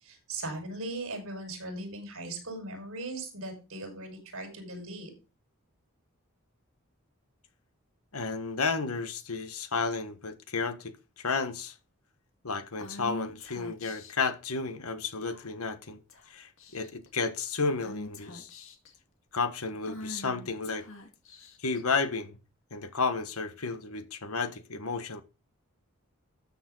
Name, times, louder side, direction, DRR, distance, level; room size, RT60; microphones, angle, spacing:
voice 1, 0.0-5.1, right 2 dB, 75° right, 5.6 m, -39 dB
voice 2, 8.1-11.7 12.4-16.0 16.3-18.5 19.3-20.9 21.6-22.4 22.7-25.2, left 4 dB, 85° left, 1.4 m, -32 dB
Female speech woman speaking / Whispering, 12.8-14.2 15.3-15.7 16.1-16.3 16.6-17.1 17.8-18.9 19.8-21.8, left 2 dB, 65° left, 2.2 m, -44 dB
13.0 x 7.1 x 4.0 m
head